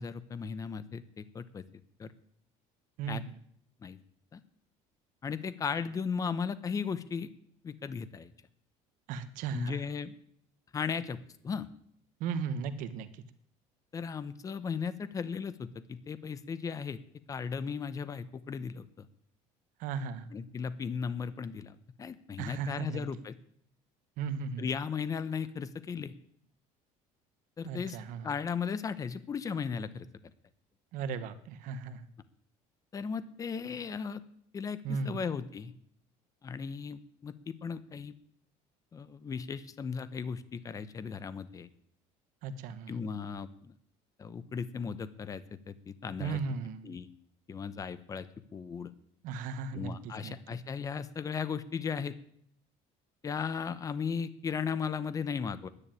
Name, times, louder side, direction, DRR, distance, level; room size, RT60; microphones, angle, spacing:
voice 1, 0.0-1.6 2.0-2.1 3.1-3.2 3.8-4.0 4.3-4.4 5.2-7.3 7.6-8.3 9.5-10.1 10.7-11.7 13.9-17.0 17.3-19.1 20.3-23.4 24.6-26.1 27.6-28.0 28.2-30.1 32.9-34.2 34.5-35.7 36.4-38.1 38.9-41.7 42.9-43.7 44.2-46.4 46.8-47.1 47.5-48.9 49.7-52.2 53.2-55.7, left 6 dB, 25° left, 14 dB, 0.8 m, -36 dB
voice 2, 3.0-3.4 9.1-9.8 12.2-13.2 19.8-20.3 22.4-23.0 24.2-24.7 27.6-28.3 30.9-32.0 34.8-35.2 42.4-43.0 46.2-46.9 49.2-50.4, right 5 dB, 70° right, 11 dB, 1.2 m, -36 dB
10.5 x 9.9 x 9.0 m, 0.66 s
cardioid pair, 135°, 14 cm